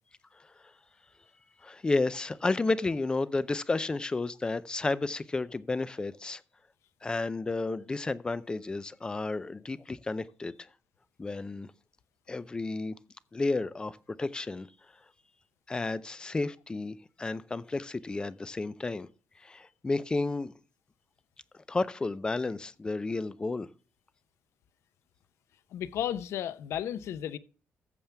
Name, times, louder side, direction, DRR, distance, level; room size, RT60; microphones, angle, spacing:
voice 1, 1.6-6.4 7.0-10.7 11.2-11.7 12.3-13.0 13.3-14.7 15.7-19.1 19.4-20.5 21.5-23.7, left 3 dB, 20° left, 0.5 m, -32 dB
voice 2, 25.7-27.4, left 10 dB, 80° left, 0.8 m, -33 dB
14.0 x 7.3 x 3.4 m
cardioid pair, 140°, 5 cm